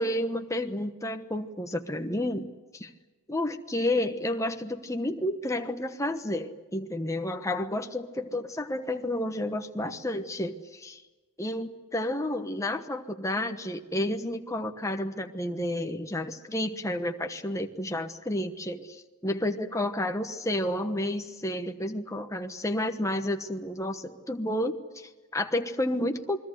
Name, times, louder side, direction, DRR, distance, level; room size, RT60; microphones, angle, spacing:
voice 1, 0.0-2.9 3.3-11.0 11.4-26.4, left 1 dB, 15° left, 5 dB, 1.1 m, -31 dB
28.5 x 21.5 x 8.0 m, 1.2 s
head